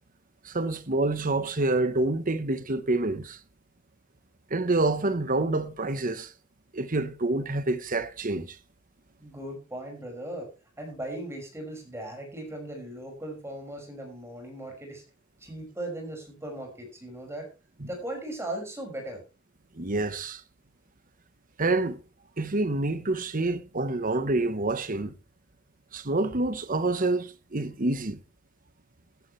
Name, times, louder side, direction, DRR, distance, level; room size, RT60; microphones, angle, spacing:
voice 1, 0.4-3.4 4.5-6.3 6.7-8.6 17.8-17.9 19.7-20.4 21.6-22.0 22.4-25.1 25.9-28.2, right 2 dB, 40° right, 1.1 m, -27 dB
voice 2, 9.2-10.5 10.8-15.0 15.4-17.5 17.9-19.2, right 1 dB, 10° right, 5.8 m, -38 dB
14.5 x 12.0 x 3.3 m
head